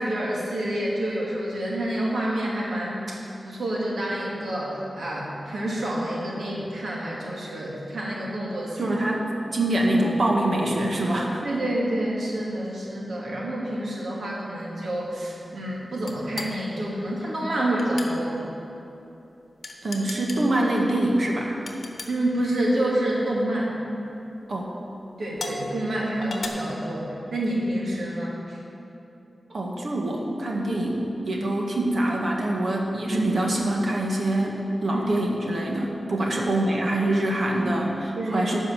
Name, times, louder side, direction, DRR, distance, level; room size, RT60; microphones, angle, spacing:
voice 1, 0.0-8.9 11.4-18.4 22.0-23.7 25.2-28.6 33.1-33.3 34.9-35.0 36.2-36.3 38.2-38.5, right 1 dB, 85° right, -4 dB, 2.3 m, -28 dB
voice 2, 8.8-11.4 19.8-21.6 24.5-24.7 29.5-38.6, right 1 dB, 60° right, -1 dB, 1.5 m, -25 dB
sound 1, 16.1-16.5 17.8-18.1 19.6-20.4 21.7-22.1 23.2-23.4 24.1-24.2 25.4-25.6 26.2-26.5, left 3 dB, 60° left, 1.0 m, -35 dB
11.0 x 5.4 x 7.7 m, 2.9 s
wide cardioid pair, 110°, 0 cm